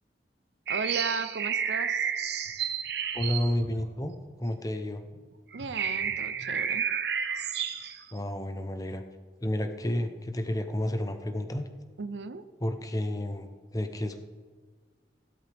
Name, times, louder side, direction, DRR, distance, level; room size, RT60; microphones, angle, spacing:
sound 1, 0.7-4.6 5.1-5.2 5.5-8.0, right 7 dB, 65° right, 1.0 m, -31 dB
voice 1, 0.7-2.1 5.5-6.9 12.0-12.5, right 4 dB, 85° right, 13 dB, 0.6 m, -35 dB
voice 2, 3.1-5.0 8.1-9.0 9.4-11.7 12.6-14.2, left 1 dB, 20° left, 8 dB, 0.8 m, -31 dB
16.5 x 12.0 x 3.5 m, 1.5 s
head